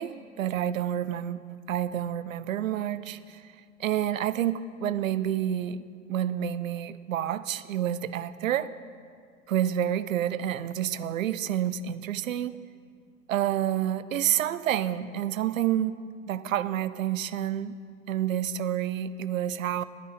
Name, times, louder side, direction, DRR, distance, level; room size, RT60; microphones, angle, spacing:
voice 1, 0.0-1.4 1.7-3.2 3.8-8.7 9.5-12.5 13.3-16.0 16.3-17.8 18.1-19.8, right 11 dB, 70° right, 15 dB, 0.6 m, -29 dB
11.5 x 9.1 x 5.8 m, 2.2 s
figure-of-eight pair, 85°, 41 cm